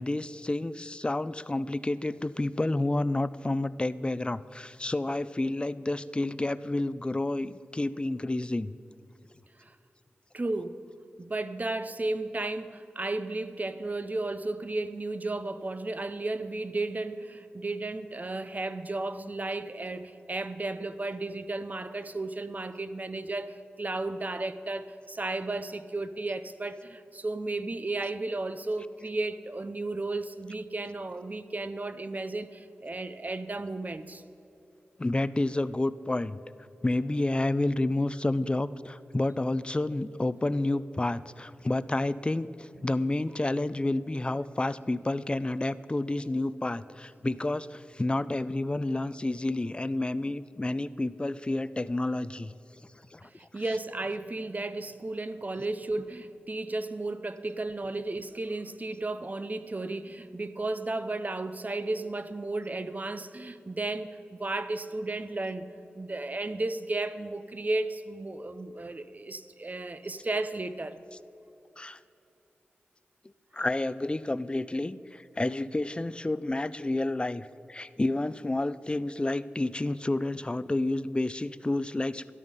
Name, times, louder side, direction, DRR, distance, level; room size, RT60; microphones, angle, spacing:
voice 1, 0.0-8.8 35.0-36.4 36.8-52.5 53.1-53.2 71.8-72.0 73.5-82.3, left 2 dB, 25° left, 16 dB, 0.4 m, -30 dB
voice 2, 10.3-10.8 11.2-34.2 42.8-42.9 53.2-65.7 66.0-71.0, right 2 dB, 40° right, 12 dB, 0.7 m, -34 dB
13.0 x 10.5 x 5.4 m, 2.8 s
cardioid pair, 50°, 4 cm